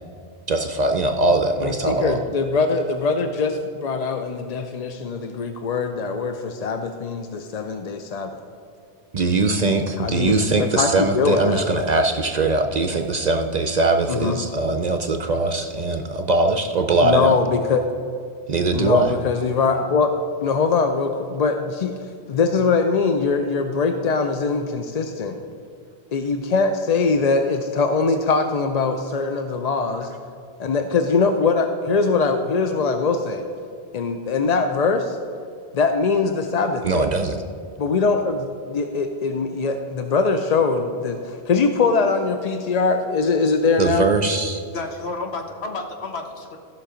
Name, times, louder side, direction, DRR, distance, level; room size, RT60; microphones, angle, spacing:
voice 1, 0.5-2.2 9.1-17.4 18.5-19.1 36.8-37.4 43.8-44.6, right 2 dB, 50° right, 6 dB, 0.6 m, -21 dB
voice 2, 1.6-8.4 10.0-11.6 14.1-14.4 17.0-17.9 18.7-20.1 20.4-22.0 22.3-25.4 26.1-30.1 30.6-33.4 33.9-35.2 35.7-37.1 37.8-44.1, left 4 dB, 50° left, 6 dB, 0.5 m, -22 dB
voice 3, 44.7-46.6, left 3 dB, 70° left, 4 dB, 1.4 m, -31 dB
14.5 x 5.8 x 5.0 m, 2.4 s
omnidirectional pair, 1.1 m